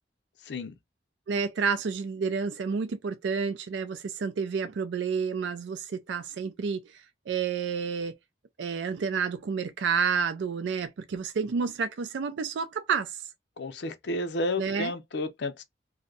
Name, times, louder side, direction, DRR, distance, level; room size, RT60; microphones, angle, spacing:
voice 1, 0.4-0.7 13.6-15.6, left 2 dB, 75° left, 0.5 m, -32 dB
voice 2, 1.3-8.1 8.6-13.2 14.6-14.9, right 6 dB, 85° right, 0.4 m, -30 dB
2.6 x 2.1 x 3.8 m
head